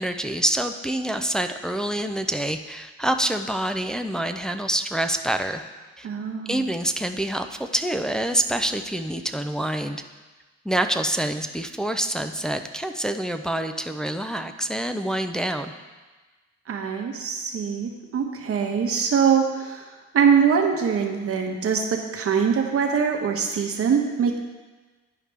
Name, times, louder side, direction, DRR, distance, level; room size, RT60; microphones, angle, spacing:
voice 1, 0.0-5.6 6.0-6.1 6.5-10.0 10.7-15.7, right 1 dB, ahead, 6 dB, 0.4 m, -26 dB
voice 2, 6.0-6.6 16.7-24.4, right 6 dB, 50° right, 2 dB, 1.0 m, -23 dB
10.5 x 5.0 x 3.3 m, 1.3 s
cardioid pair, 90°, 30 cm